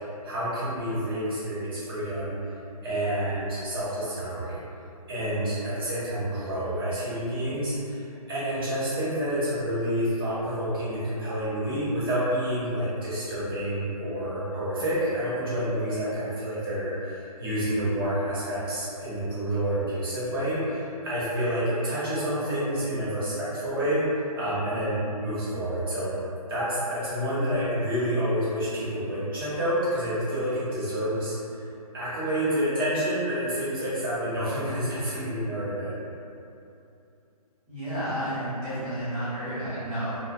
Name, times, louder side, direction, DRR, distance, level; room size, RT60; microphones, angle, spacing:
voice 1, 0.2-2.4 2.8-4.6 5.1-24.0 24.3-26.1 26.5-31.4 31.9-35.9, equal, 35° right, -10 dB, 0.9 m, -28 dB
voice 2, 37.7-40.2, right 1 dB, 5° left, -17 dB, 0.7 m, -31 dB
2.6 x 2.1 x 2.3 m, 2.7 s
figure-of-eight pair, 145°, 20 cm